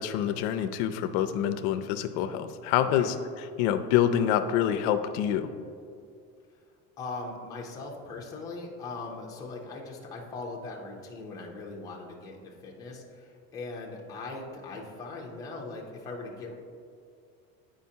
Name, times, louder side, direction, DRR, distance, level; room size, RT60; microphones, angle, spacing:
voice 1, 0.0-3.1 3.6-5.5, left 10 dB, 75° left, 10 dB, 0.5 m, -26 dB
voice 2, 7.0-16.5, left 3 dB, 10° left, -3 dB, 0.4 m, -40 dB
8.5 x 5.0 x 2.7 m, 2.3 s
cardioid pair, 180°, 34 cm